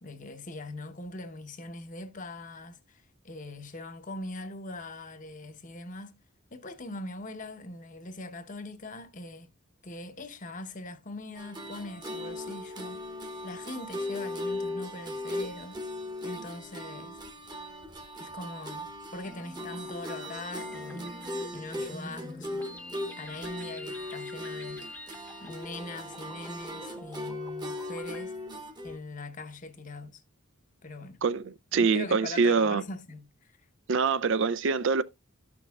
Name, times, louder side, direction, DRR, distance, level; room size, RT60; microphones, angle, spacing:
voice 1, 0.0-6.2 6.5-9.5 9.8-13.0 13.4-15.8 16.2-17.2 18.2-21.1 21.5-22.6 23.2-24.9 25.4-28.4 28.8-30.2 30.8-31.2 31.7-33.5, left 2 dB, 35° left, 0.8 m, -41 dB
sound 1, 11.4-29.0, left 1 dB, 20° right, 0.9 m, -38 dB
sound 2, 19.2-28.2, left 1 dB, 10° left, 0.8 m, -45 dB
voice 2, 31.2-32.8 33.9-35.0, right 5 dB, 60° right, 0.4 m, -25 dB
13.0 x 6.1 x 2.3 m
head